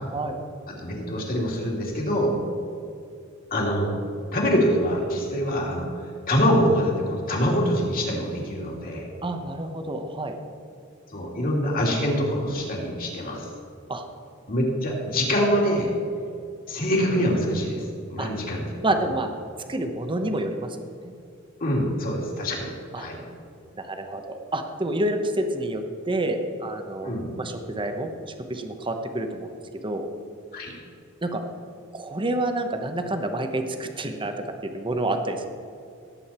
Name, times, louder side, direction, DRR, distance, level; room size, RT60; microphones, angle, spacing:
voice 1, 0.8-2.4 3.5-3.9 4.3-9.1 11.1-13.5 14.5-15.9 16.7-18.8 21.6-22.7 23.0-23.2 27.0-27.3 30.5-30.7, equal, 45° left, -2 dB, 2.7 m, -25 dB
voice 2, 9.2-10.4 13.9-14.0 18.2-18.3 18.8-19.3 19.7-20.8 21.0-21.1 22.9-23.1 23.8-28.1 28.5-29.5 29.8-30.1 31.2-31.4 31.9-34.3 34.6-35.5, right 1 dB, 25° right, 6 dB, 0.9 m, -28 dB
18.0 x 8.0 x 4.4 m, 2.5 s
head